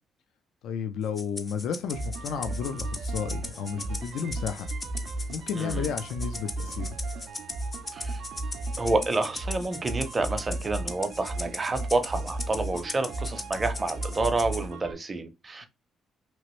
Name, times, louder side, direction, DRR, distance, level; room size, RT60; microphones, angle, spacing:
voice 1, 0.6-4.7 5.3-6.9, left 7 dB, 80° left, 0.4 m, -32 dB
Rattle (instrument), 1.2-14.7, left 2 dB, 25° left, 0.5 m, -39 dB
sound 1, 1.9-14.9, right 2 dB, 75° right, 0.5 m, -35 dB
voice 2, 8.8-15.7, right 2 dB, 30° right, 0.6 m, -29 dB
3.0 x 2.5 x 3.0 m
cardioid pair, 90°, 0 cm